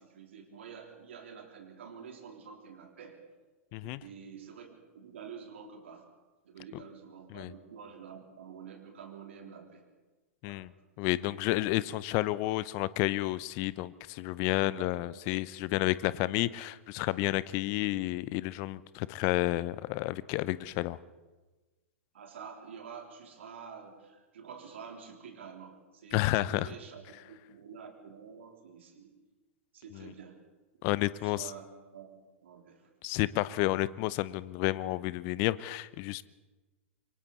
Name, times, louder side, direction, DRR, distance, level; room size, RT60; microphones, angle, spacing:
voice 1, 0.0-3.2 3.8-6.1 6.4-9.8 10.4-10.7 14.8-15.2 16.2-16.3 22.1-27.0 27.3-29.1 29.7-30.4 31.2-31.6 31.9-32.1 32.4-32.9, right 6 dB, 60° right, 2 dB, 3.7 m, -48 dB
voice 2, 3.7-4.0 7.3-7.5 10.4-10.7 11.0-21.0 26.1-26.7 29.9-30.1 30.8-31.5 33.0-36.2, left 18 dB, 40° left, 19 dB, 0.7 m, -31 dB
27.0 x 24.0 x 4.2 m, 1.2 s
figure-of-eight pair, 105°, 7 cm